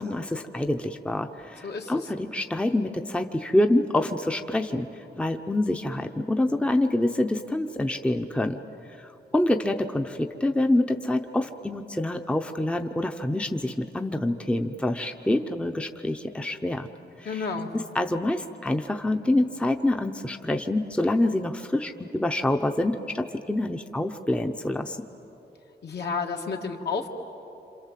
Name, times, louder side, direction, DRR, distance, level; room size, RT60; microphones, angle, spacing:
voice 1, 0.0-4.9 5.2-8.6 9.0-16.9 17.2-17.5 17.7-25.0, left 1 dB, 5° left, 5 dB, 0.7 m, -26 dB
voice 2, 1.6-2.1 17.2-17.7 25.8-27.1, left 5 dB, 70° left, 2 dB, 2.0 m, -31 dB
27.5 x 27.5 x 7.5 m, 3.0 s
wide cardioid pair, 155°, 18 cm